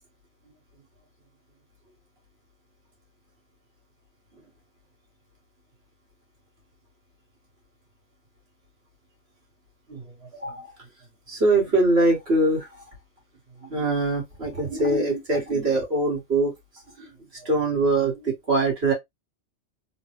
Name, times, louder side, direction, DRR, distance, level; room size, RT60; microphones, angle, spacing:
voice 1, 9.9-10.7 11.3-12.8 13.6-16.5 17.0-18.9, right 2 dB, 60° right, 2.0 m, -23 dB
3.9 x 2.3 x 3.1 m
omnidirectional pair, 1.2 m